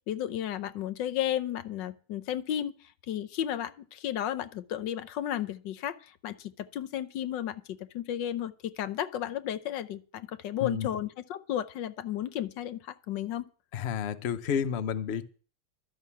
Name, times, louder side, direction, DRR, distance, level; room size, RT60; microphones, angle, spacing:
voice 1, 0.1-2.7 3.1-13.4, left 11 dB, 70° left, 13 dB, 1.3 m, -33 dB
voice 2, 13.7-15.3, left 8 dB, 85° left, 11 dB, 0.5 m, -31 dB
12.5 x 6.5 x 8.3 m, 0.40 s
omnidirectional pair, 2.3 m